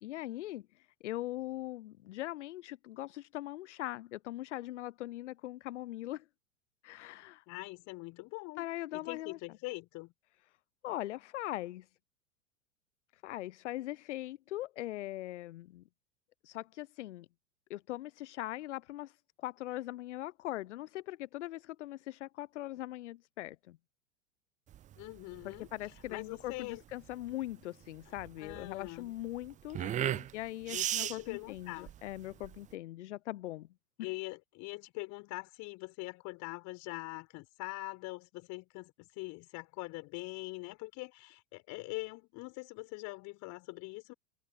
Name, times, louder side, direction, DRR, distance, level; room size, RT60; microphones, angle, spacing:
voice 1, 0.0-6.2 6.8-7.4 8.6-9.4 10.8-11.9 13.1-15.8 16.4-17.3 17.7-23.8 25.7-30.0 30.3-33.7, left 15 dB, 60° left, 0.7 m, -41 dB
voice 2, 7.5-8.7 8.9-10.1 25.0-25.7 26.1-26.8 28.1-29.1 29.8-30.3 30.7-31.9 34.0-44.1, left 25 dB, 45° left, 6.0 m, -43 dB
sound 1, 24.7-32.7, right 11 dB, 20° right, 0.6 m, -38 dB
figure-of-eight pair, 90°, 40 cm